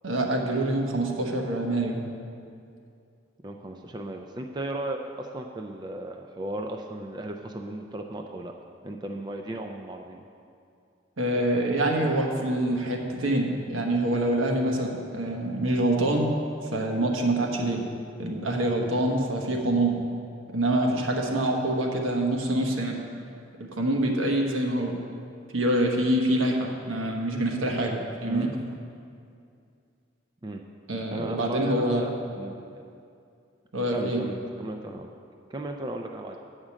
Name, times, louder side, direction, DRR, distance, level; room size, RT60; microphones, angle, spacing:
voice 1, 0.0-2.0 11.2-16.3 16.7-17.9 18.2-20.0 20.5-23.0 23.7-24.9 25.5-28.5 30.9-32.1 33.7-34.2, right 1 dB, 80° right, 1 dB, 1.1 m, -25 dB
voice 2, 3.4-8.5 8.8-10.2 28.3-28.5 30.4-30.6 31.1-32.8 33.9-35.1 35.5-36.4, right 1 dB, 20° right, 3 dB, 0.3 m, -36 dB
8.4 x 5.0 x 7.4 m, 2.5 s
head